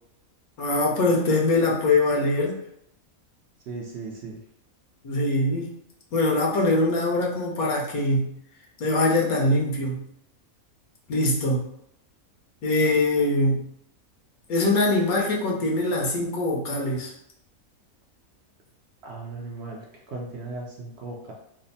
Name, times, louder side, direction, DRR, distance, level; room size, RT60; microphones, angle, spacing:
voice 1, 0.6-2.6 5.0-5.7 6.1-8.3 8.8-10.0 11.1-11.7 12.6-13.6 14.5-17.1, left 2 dB, 85° left, -2 dB, 1.3 m, -23 dB
voice 2, 3.7-4.4 19.0-21.3, right 3 dB, 65° right, -1 dB, 0.7 m, -37 dB
3.4 x 2.0 x 4.0 m, 0.75 s
omnidirectional pair, 1.5 m